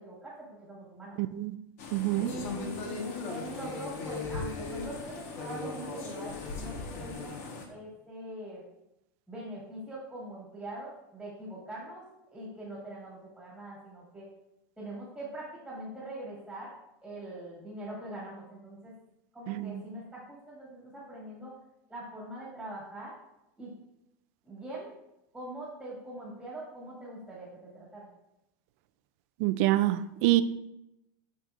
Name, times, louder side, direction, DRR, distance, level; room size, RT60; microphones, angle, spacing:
voice 1, 0.0-1.2 2.2-7.4 7.7-8.6 9.3-12.0 12.3-14.3 14.8-16.7 17.0-18.9 19.3-21.5 21.9-23.1 23.6-23.7 24.4-24.9 25.3-28.1, right 1 dB, ahead, -6 dB, 1.9 m, -42 dB
voice 2, 1.2-1.5 1.9-2.3 19.5-19.8 29.4-30.4, right 16 dB, 45° right, 13 dB, 0.4 m, -26 dB
sound 1, 1.8-7.7, left 4 dB, 55° left, 1.3 m, -38 dB
10.0 x 6.5 x 2.5 m, 0.88 s
supercardioid pair, 175°, 10 cm